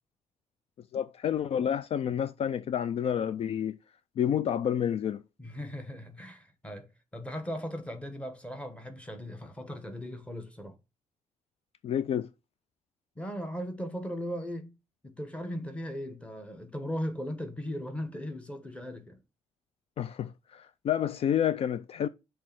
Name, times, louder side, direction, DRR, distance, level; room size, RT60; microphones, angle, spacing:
voice 1, 0.9-3.8 4.2-5.2 11.8-12.3 20.0-22.1, left 9 dB, 50° left, 0.3 m, -29 dB
voice 2, 5.4-10.8 13.2-14.7 15.0-19.2, equal, 10° left, 1.1 m, -38 dB
6.4 x 3.4 x 5.9 m
cardioid pair, 145°, 13 cm